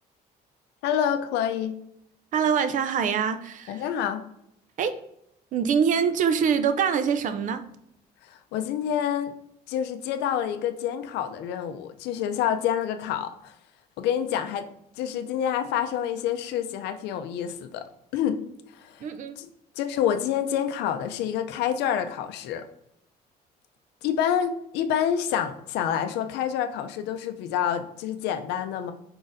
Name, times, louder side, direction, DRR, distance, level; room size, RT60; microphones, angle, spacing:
voice 1, 0.8-1.8 3.7-4.2 8.2-9.3 9.7-13.6 14.0-14.7 15.0-17.9 18.1-18.4 18.7-19.1 19.4-19.5 19.7-22.7 24.0-28.9, left 9 dB, 85° left, 8 dB, 0.5 m, -27 dB
voice 2, 2.3-3.8 4.8-5.0 5.5-7.6 19.0-19.4, right 7 dB, 50° right, 11 dB, 0.4 m, -24 dB
4.7 x 4.0 x 2.6 m, 0.75 s
cardioid pair, 110°, 17 cm